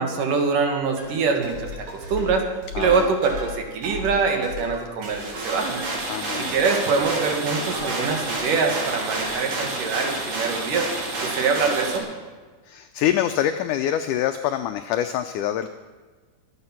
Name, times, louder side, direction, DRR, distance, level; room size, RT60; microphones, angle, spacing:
voice 1, 0.0-2.4 2.8-5.8 6.3-10.9 11.2-12.1, right 5 dB, 65° right, 3 dB, 3.1 m, -24 dB
sound 1, 1.0-8.4 8.6-9.3, left 1 dB, 80° right, 5.7 m, -36 dB
voice 2, 2.8-3.1 6.1-6.6 12.7-15.7, left 11 dB, 90° left, 8 dB, 1.8 m, -25 dB
sound 2, 5.0-12.0, right 2 dB, 50° right, 3.6 m, -29 dB
23.5 x 8.9 x 5.8 m, 1.4 s
omnidirectional pair, 4.3 m